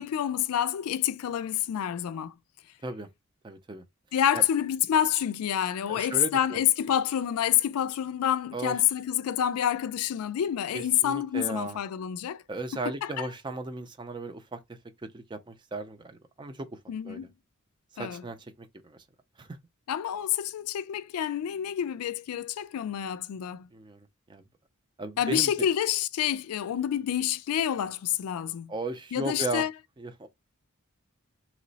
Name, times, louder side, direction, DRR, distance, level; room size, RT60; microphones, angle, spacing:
voice 1, 0.0-2.3 4.1-12.4 12.7-13.3 16.9-17.3 18.0-18.2 19.9-23.7 25.2-28.7 29.1-29.7, left 10 dB, 90° left, 0.3 m, -28 dB
voice 2, 3.4-3.8 4.3-4.4 5.9-6.6 8.5-8.8 10.7-11.8 12.5-14.6 15.1-16.7 17.0-17.3 18.0-19.0 19.4-19.5 23.7-24.4 25.0-25.5 28.7-29.7 30.0-30.3, right 2 dB, 20° right, 0.4 m, -36 dB
3.0 x 2.0 x 3.9 m
head